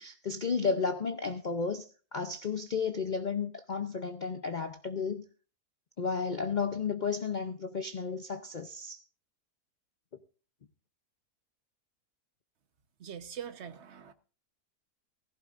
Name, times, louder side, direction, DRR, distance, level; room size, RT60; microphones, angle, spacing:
voice 1, 0.0-1.8 2.1-5.2 6.0-9.0, left 5 dB, 55° left, 0.5 m, -33 dB
voice 2, 13.0-14.1, right 8 dB, 50° right, 1.2 m, -43 dB
17.0 x 15.0 x 2.5 m
omnidirectional pair, 1.7 m